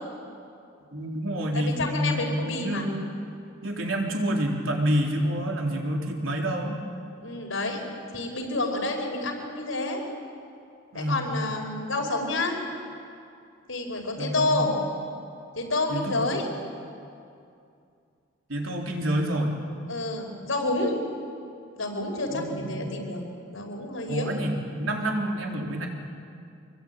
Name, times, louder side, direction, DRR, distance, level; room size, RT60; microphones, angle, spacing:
voice 1, 0.9-3.1 3.6-6.8 10.9-11.2 14.2-14.6 15.9-16.2 18.5-19.5 22.3-22.9 24.1-25.9, right 1 dB, 80° right, 0 dB, 3.9 m, -28 dB
voice 2, 1.5-2.8 7.2-7.8 8.1-10.0 10.9-12.6 13.7-14.7 15.5-16.5 19.9-21.0 21.8-23.2 23.5-24.3, left 2 dB, 80° left, 2 dB, 5.0 m, -29 dB
25.5 x 22.5 x 9.2 m, 2.5 s
head